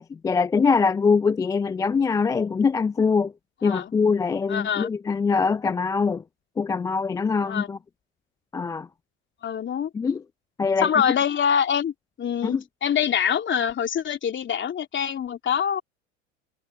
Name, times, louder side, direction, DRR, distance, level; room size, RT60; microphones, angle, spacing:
voice 1, 0.0-3.3 3.6-6.2 6.6-7.8 8.5-8.9 9.9-10.2 10.6-10.9 12.4-12.6, left 5 dB, 10° left, 0.3 m, -23 dB
voice 2, 4.5-4.9 7.4-7.7 9.4-9.9 10.8-15.8, left 8 dB, 30° left, 2.9 m, -25 dB
hypercardioid pair, 80°, 38 cm